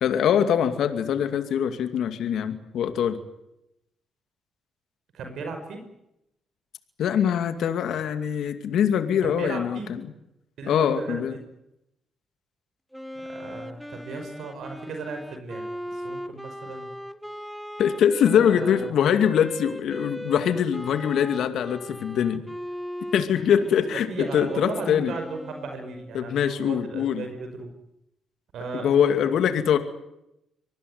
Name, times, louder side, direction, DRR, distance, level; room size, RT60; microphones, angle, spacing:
voice 1, 0.0-3.2 7.0-10.0 10.7-11.4 17.8-22.4 23.1-25.1 26.1-27.2 28.7-29.8, left 8 dB, 75° left, 8 dB, 2.5 m, -23 dB
voice 2, 5.1-5.8 9.2-9.9 10.6-11.4 13.3-15.7 15.9-16.9 18.3-18.8 23.7-23.8 24.1-27.7 28.5-29.3, right 4 dB, 70° right, 5 dB, 5.6 m, -36 dB
Wind instrument woodwind instrument, 12.9-26.3, equal, ahead, 1.5 m, -38 dB
25.0 x 19.5 x 9.6 m, 0.84 s
cardioid pair, 90°, 0 cm